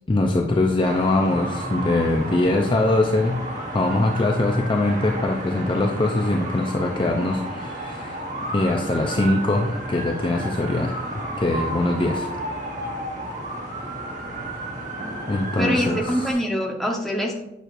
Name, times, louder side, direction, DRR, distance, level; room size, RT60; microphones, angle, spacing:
voice 1, 0.1-3.4 3.7-8.2 8.5-11.1 11.4-12.3 15.3-16.3, left 2 dB, 25° left, 2 dB, 0.5 m, -22 dB
sound 1, 0.8-16.3, right 1 dB, 40° right, 1.3 m, -32 dB
voice 2, 15.6-17.4, equal, ahead, 0 dB, 1.0 m, -24 dB
9.0 x 6.3 x 2.5 m, 0.90 s
head